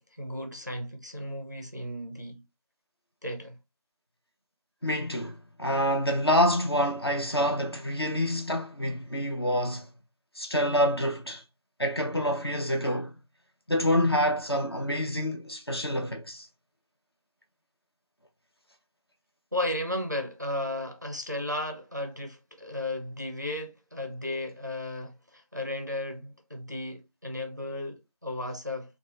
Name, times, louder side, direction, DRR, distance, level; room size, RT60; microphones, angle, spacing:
voice 1, 0.2-2.4 3.2-3.6 19.5-29.0, left 1 dB, 30° right, 0.5 m, -34 dB
voice 2, 4.8-9.9 10.4-11.4 11.8-13.1 13.7-16.5, equal, 40° left, 0.6 m, -27 dB
4.0 x 2.3 x 2.9 m
figure-of-eight pair, 170°, 20 cm